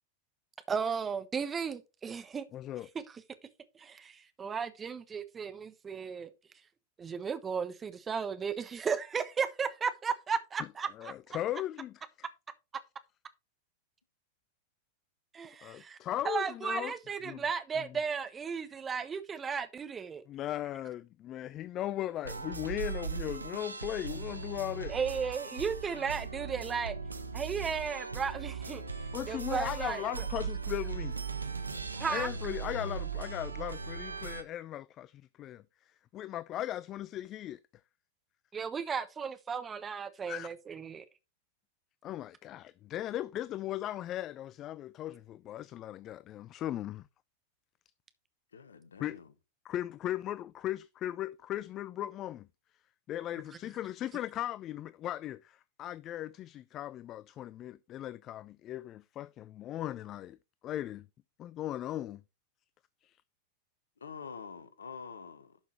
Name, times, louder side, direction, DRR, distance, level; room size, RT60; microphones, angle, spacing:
voice 1, 0.7-2.5 3.1-3.2 3.7-6.3 7.0-11.1 15.3-16.0 16.2-20.2 24.9-27.0 27.3-28.8 29.3-30.3 32.0-32.3 38.5-41.0, right 6 dB, 20° right, 1.1 m, -35 dB
voice 2, 2.5-2.9 11.0-11.9 15.6-16.9 17.2-17.4 17.8-17.9 20.3-25.0 29.1-31.2 32.1-35.6 36.1-37.6 40.3-40.5 42.0-47.0 49.0-49.2 49.6-52.5 53.1-60.4 60.6-61.1 61.4-62.2 63.0-63.2, left 13 dB, 30° left, 0.3 m, -38 dB
sound 1, 22.2-34.4, right 5 dB, 80° right, 0.9 m, -38 dB
voice 3, 48.5-49.3 64.0-65.6, left 6 dB, 70° left, 1.0 m, -46 dB
11.5 x 5.9 x 3.1 m
figure-of-eight pair, 90°, 0 cm